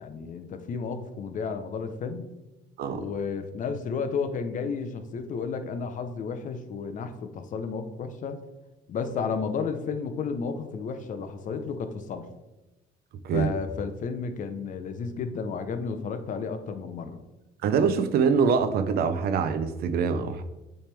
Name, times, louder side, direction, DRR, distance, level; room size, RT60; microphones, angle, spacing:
voice 1, 0.0-2.3 3.0-8.4 8.9-12.3 13.3-17.2, left 5 dB, 50° left, 8 dB, 0.6 m, -32 dB
voice 2, 17.6-20.4, right 6 dB, 65° right, 10 dB, 0.6 m, -24 dB
8.8 x 3.3 x 3.4 m, 1.0 s
cardioid pair, 110°, 17 cm